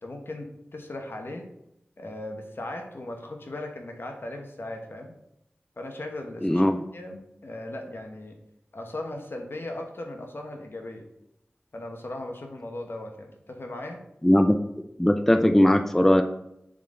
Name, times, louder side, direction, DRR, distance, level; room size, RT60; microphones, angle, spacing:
voice 1, 0.0-1.4 2.0-5.1 5.8-8.4 8.7-11.1 11.7-14.0, left 1 dB, 60° left, 3 dB, 1.1 m, -38 dB
voice 2, 6.4-6.8 14.2-14.5 15.0-16.2, left 1 dB, 10° left, 6 dB, 0.4 m, -19 dB
7.2 x 3.9 x 3.8 m, 0.82 s
wide cardioid pair, 65°, 4 cm